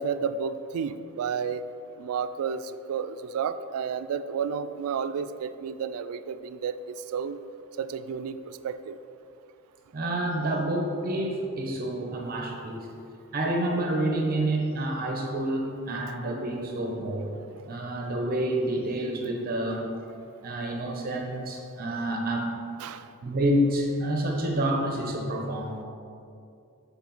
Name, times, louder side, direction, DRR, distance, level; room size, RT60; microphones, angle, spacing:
voice 1, 0.0-1.6 2.0-7.4 7.8-9.0 22.8-23.1, right 6 dB, 80° right, 12 dB, 0.3 m, -31 dB
voice 2, 9.9-12.9 13.3-17.3 17.7-19.9 20.4-22.5 23.2-25.8, right 1 dB, 45° right, 1 dB, 0.7 m, -28 dB
7.1 x 4.1 x 4.0 m, 2.5 s
head